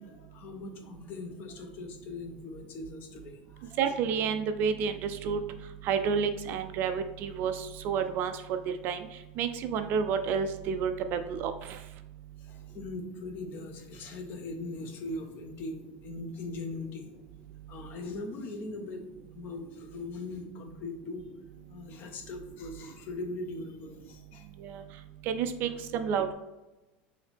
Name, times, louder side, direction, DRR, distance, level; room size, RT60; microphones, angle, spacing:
voice 1, 0.0-3.9 12.5-17.1 17.7-19.0 19.3-21.2 21.7-24.5 25.7-25.8, left 2 dB, 40° left, 5 dB, 0.8 m, -40 dB
voice 2, 3.8-5.4 5.8-8.6 8.8-9.0 9.4-11.5 24.6-24.8 25.3-26.3, right 6 dB, 45° right, 8 dB, 0.4 m, -30 dB
5.6 x 2.8 x 3.4 m, 1.0 s
supercardioid pair, 150°, 5 cm